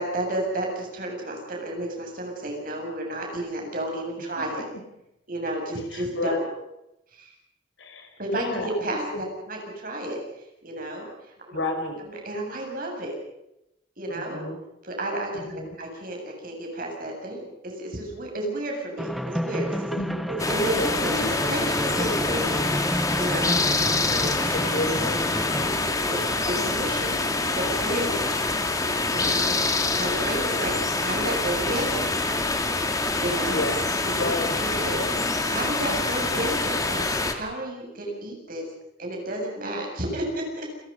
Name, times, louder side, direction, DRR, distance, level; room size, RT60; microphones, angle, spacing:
voice 1, 0.0-4.6 5.3-6.4 7.1-7.3 8.2-10.2 10.6-11.1 11.5-11.6 12.0-13.2 14.0-14.4 14.8-15.4 15.8-19.9 20.3-22.6 23.1-23.6 24.1-24.6 25.5-26.2 26.5-27.2 27.5-28.2 29.2-29.5 29.8-32.1 33.2-33.6 34.0-34.3 34.6-35.0 35.4-38.7 39.0-40.7, right 1 dB, 50° right, 1 dB, 7.8 m, -31 dB
voice 2, 5.9-6.4 7.8-8.7 9.1-9.3 11.5-12.0 14.1-14.5 15.3-15.8 19.9-20.2 20.8-21.0 23.5-24.0 24.5-25.5 29.1-29.6 33.5-33.9 34.1-34.8, left 1 dB, 80° left, 5 dB, 4.9 m, -31 dB
sound 1, 19.0-25.8, equal, ahead, 1.1 m, -31 dB
sound 2, 20.4-37.3, left 3 dB, 20° left, 2.1 m, -26 dB
29.0 x 22.5 x 5.6 m, 0.86 s
head